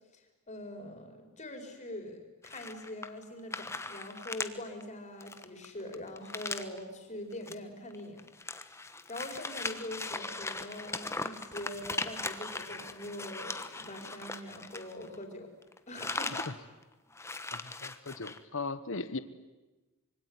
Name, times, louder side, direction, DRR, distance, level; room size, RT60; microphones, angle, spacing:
voice 1, 0.1-8.6 9.1-15.5 15.9-16.4, left 1 dB, 30° left, 4 dB, 4.7 m, -43 dB
sound 1, 2.4-3.2 3.5-4.5 4.8-4.9 5.2-6.8 7.3-7.5 7.9-15.3 15.6-16.5 16.8-16.9 17.1-18.4, left 3 dB, 10° left, 1.2 m, -39 dB
voice 2, 17.5-19.2, left 3 dB, 60° left, 13 dB, 1.2 m, -38 dB
25.5 x 24.0 x 9.7 m, 1.1 s
head